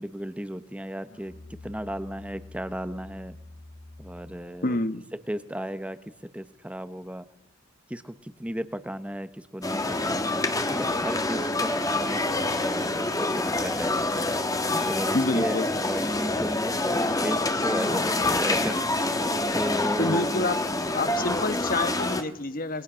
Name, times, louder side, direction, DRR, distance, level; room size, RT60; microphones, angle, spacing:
voice 1, 0.0-1.3 1.6-3.4 4.0-4.7 5.3-6.0 6.3-7.2 7.9-12.2 12.6-13.9 14.7-15.6 15.9-19.0 19.5-20.3, equal, 5° right, 12 dB, 1.0 m, -34 dB
Musical instrument, 1.0-4.6, left 3 dB, 75° left, 4.2 m, -47 dB
voice 2, 4.6-5.0 15.1-15.7 20.0-20.6 20.9-22.8, left 2 dB, 45° left, 12 dB, 1.3 m, -27 dB
sound 1, 9.6-22.2, left 2 dB, 15° left, 1.5 m, -26 dB
27.5 x 21.5 x 6.3 m, 0.78 s
head